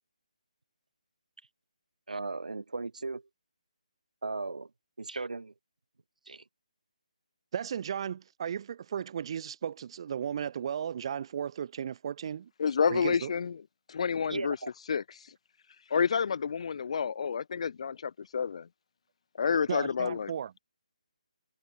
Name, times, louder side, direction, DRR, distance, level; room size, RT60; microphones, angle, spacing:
voice 1, 2.1-3.2 4.2-4.7 5.0-5.5 6.3-6.4 14.3-14.7, right 3 dB, 75° right, 3.0 m, -36 dB
voice 2, 7.5-12.5 12.9-13.3 19.7-20.6, right 8 dB, 40° right, 5.2 m, -35 dB
voice 3, 12.6-13.6 13.9-14.6 14.9-15.3 15.9-18.7 19.4-20.3, left 6 dB, 50° left, 2.5 m, -29 dB
figure-of-eight pair, 150°, 4 cm